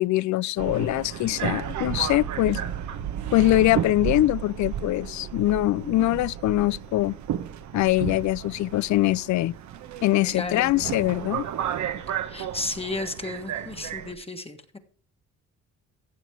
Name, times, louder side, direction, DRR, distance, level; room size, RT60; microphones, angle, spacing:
voice 1, 0.0-2.6 3.3-7.2 7.7-9.6 10.0-11.5, left 16 dB, 70° left, 0.4 m, -23 dB
Subway metro underground, 0.6-14.1, right 9 dB, 70° right, 1.1 m, -33 dB
voice 2, 10.3-10.8 12.3-14.8, left 2 dB, 20° left, 1.4 m, -33 dB
15.0 x 7.3 x 4.7 m
cardioid pair, 90°, 30 cm